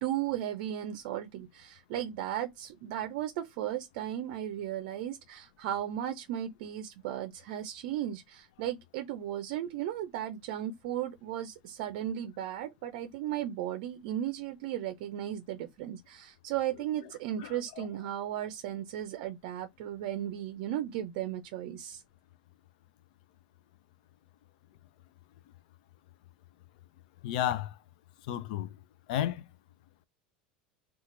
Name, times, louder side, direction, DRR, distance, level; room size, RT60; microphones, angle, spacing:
voice 1, 0.0-22.0, right 11 dB, 65° right, 0.5 m, -35 dB
voice 2, 17.4-17.9 27.2-27.7 28.3-28.7 29.1-29.4, left 11 dB, 70° left, 0.4 m, -32 dB
2.9 x 2.4 x 3.7 m
hypercardioid pair, 90°, 5 cm